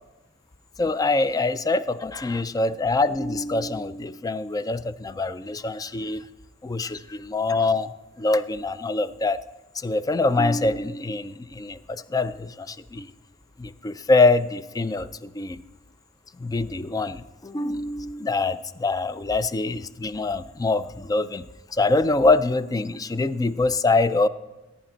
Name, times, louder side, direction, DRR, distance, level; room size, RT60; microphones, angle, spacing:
voice 1, 0.8-6.2 6.6-9.4 9.7-13.1 13.6-15.6 16.4-21.4 21.7-24.3, left 3 dB, 20° left, 14 dB, 0.3 m, -24 dB
15.5 x 8.7 x 3.9 m, 1.1 s
head